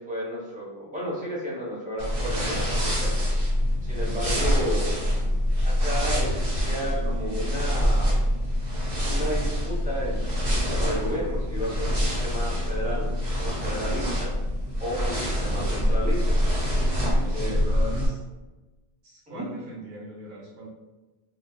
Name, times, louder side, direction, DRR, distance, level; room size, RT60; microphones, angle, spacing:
voice 1, 0.0-3.1 3.8-5.0 5.6-8.2 9.0-10.2 10.5-14.3 14.8-16.4 17.3-17.6 19.3-19.5, equal, 10° right, -7 dB, 0.8 m, -33 dB
sound 1, 2.0-18.1, equal, 85° right, 1.3 m, -25 dB
voice 2, 17.0-18.2 19.0-20.7, equal, 55° right, -6 dB, 0.8 m, -40 dB
2.7 x 2.2 x 3.8 m, 1.1 s
omnidirectional pair, 1.1 m